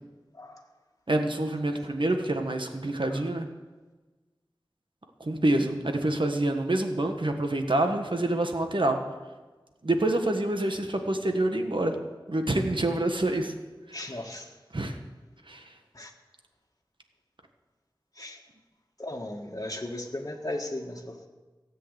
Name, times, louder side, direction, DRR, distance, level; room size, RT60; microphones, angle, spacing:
voice 1, 1.1-3.5 5.2-9.0 9.8-11.9 12.3-13.5 13.9-14.2 14.7-15.0 15.5-15.7, right 1 dB, 70° right, 4 dB, 1.5 m, -27 dB
voice 2, 13.9-14.5 15.9-16.1 18.2-18.4 19.0-21.3, left 1 dB, 40° left, 1 dB, 1.7 m, -36 dB
17.0 x 7.8 x 8.2 m, 1.3 s
wide cardioid pair, 40°, 9 cm